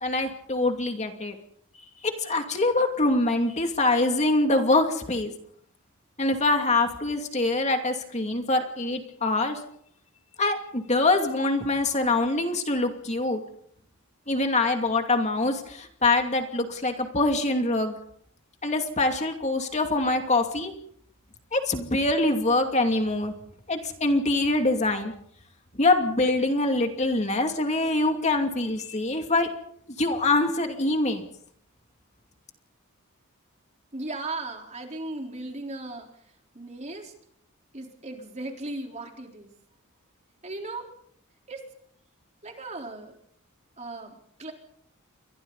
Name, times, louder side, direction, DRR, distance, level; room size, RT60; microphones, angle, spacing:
voice 1, 0.0-1.3 2.0-5.3 6.2-9.6 10.4-13.4 14.3-17.9 18.6-20.7 21.5-23.3 23.7-25.1 25.7-29.5 30.0-31.2, left 2 dB, 30° left, 4 dB, 2.6 m, -24 dB
voice 2, 33.9-36.1 36.5-37.1 37.7-39.5 40.4-40.9 41.5-41.7 42.4-43.1 43.8-44.5, right 2 dB, 30° right, 2 dB, 4.1 m, -37 dB
29.0 x 24.5 x 4.1 m, 0.66 s
head